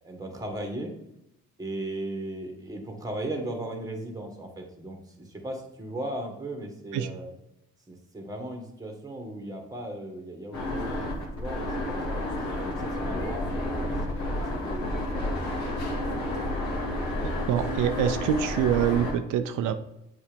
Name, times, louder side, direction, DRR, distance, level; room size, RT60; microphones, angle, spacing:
voice 1, 0.0-1.0 1.6-7.3 7.9-12.2 12.5-15.6, right 1 dB, 10° right, 3 dB, 1.8 m, -37 dB
sound 1, 10.5-19.1, left 1 dB, 70° left, 2.2 m, -30 dB
voice 2, 17.5-19.7, right 10 dB, 90° right, 9 dB, 0.5 m, -25 dB
7.4 x 4.2 x 5.2 m, 0.85 s
cardioid pair, 90°, 30 cm